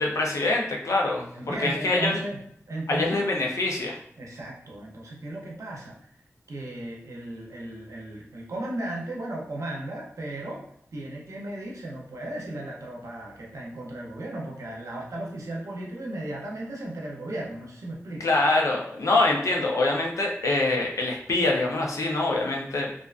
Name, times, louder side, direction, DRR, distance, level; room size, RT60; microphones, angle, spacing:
voice 1, 0.0-2.2 2.9-4.0 18.2-22.9, left 2 dB, 85° left, 0 dB, 0.5 m, -25 dB
voice 2, 1.3-2.4 2.7-3.2 4.2-6.0 6.5-10.6 10.9-18.3, right 1 dB, 90° right, -1 dB, 0.6 m, -35 dB
2.4 x 2.2 x 2.4 m, 0.67 s
wide cardioid pair, 85°, 5 cm